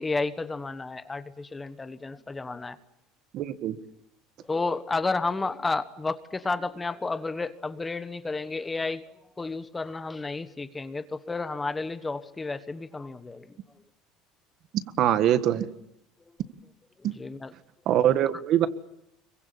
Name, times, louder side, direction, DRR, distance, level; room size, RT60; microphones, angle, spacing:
voice 1, 0.0-2.8 4.4-9.0 9.4-13.5 17.0-17.5, left 3 dB, 15° left, 11 dB, 1.3 m, -31 dB
voice 2, 3.3-3.8 14.7-15.7 17.0-17.1 17.8-18.7, right 11 dB, 50° right, 11 dB, 1.6 m, -23 dB
26.0 x 23.5 x 8.5 m, 0.79 s
cardioid pair, 140°, 0 cm